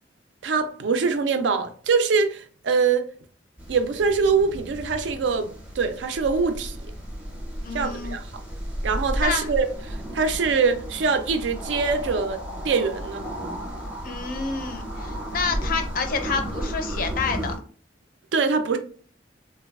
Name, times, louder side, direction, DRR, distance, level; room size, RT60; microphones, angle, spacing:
voice 1, 0.4-3.0 3.7-6.8 7.7-8.3 8.8-12.4 12.6-13.3 18.3-18.8, right 5 dB, 80° right, 0.4 m, -23 dB
sound 1, 3.6-17.6, equal, 5° right, 0.5 m, -33 dB
voice 2, 7.6-8.2 9.2-9.5 14.0-17.5, left 5 dB, 50° left, 0.4 m, -28 dB
3.2 x 2.2 x 2.2 m
head